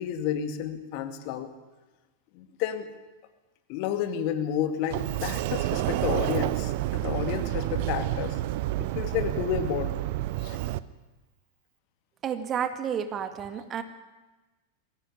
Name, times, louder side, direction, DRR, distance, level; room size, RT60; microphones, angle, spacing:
voice 1, 0.0-1.5 2.3-2.9 3.7-8.4 8.8-10.0 10.4-10.6, left 9 dB, 45° left, 8 dB, 2.3 m, -31 dB
Sliding door, 4.9-10.8, right 15 dB, 50° right, 0.8 m, -29 dB
voice 2, 12.2-13.8, right 8 dB, 30° right, 9 dB, 1.9 m, -31 dB
22.5 x 16.0 x 9.9 m, 1.2 s
figure-of-eight pair, 90°, 0 cm